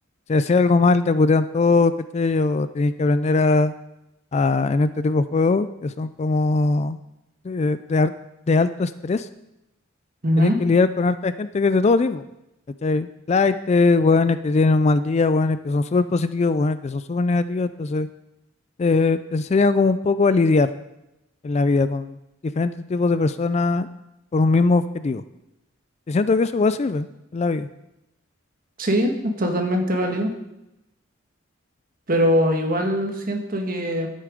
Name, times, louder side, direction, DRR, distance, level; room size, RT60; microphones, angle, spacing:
voice 1, 0.3-3.7 4.3-7.0 7.4-8.1 8.5-9.3 10.4-12.2 12.8-18.1 18.8-20.7 21.4-22.1 22.5-23.9 24.3-25.2 26.1-27.1 27.3-27.7, left 3 dB, 30° left, 13 dB, 0.3 m, -20 dB
voice 2, 10.2-10.6 28.8-30.3 32.1-34.1, equal, 45° right, 3 dB, 1.5 m, -22 dB
11.0 x 8.4 x 5.1 m, 0.89 s
head